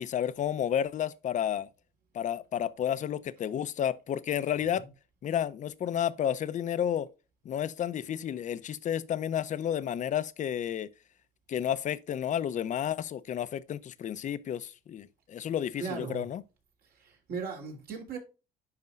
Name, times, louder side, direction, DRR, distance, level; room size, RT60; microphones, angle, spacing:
voice 1, 0.0-1.7 2.1-4.8 5.2-7.1 7.4-10.9 11.5-16.4, left 10 dB, 45° left, 0.7 m, -31 dB
voice 2, 15.8-16.2 17.0-18.2, right 5 dB, 65° right, 3.2 m, -37 dB
11.0 x 4.3 x 2.5 m
cardioid pair, 110°, 17 cm